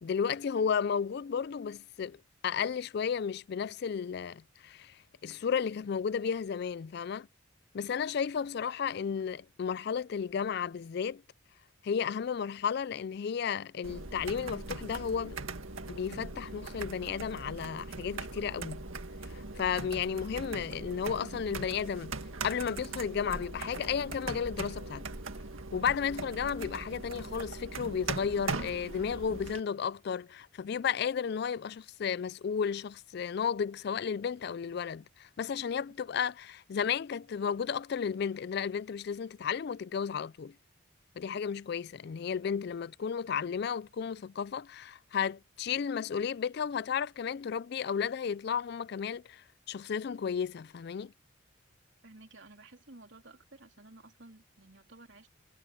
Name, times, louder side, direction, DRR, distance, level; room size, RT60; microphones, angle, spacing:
voice 1, 0.0-7.3 7.7-11.2 11.8-15.4 15.9-18.8 19.3-22.2 22.4-25.0 25.7-40.5 41.2-51.1, left 7 dB, 55° left, 0.3 m, -33 dB
sound 1, 13.8-29.6, right 3 dB, 90° right, 2.0 m, -40 dB
voice 2, 52.0-55.3, right 2 dB, 65° right, 3.5 m, -54 dB
head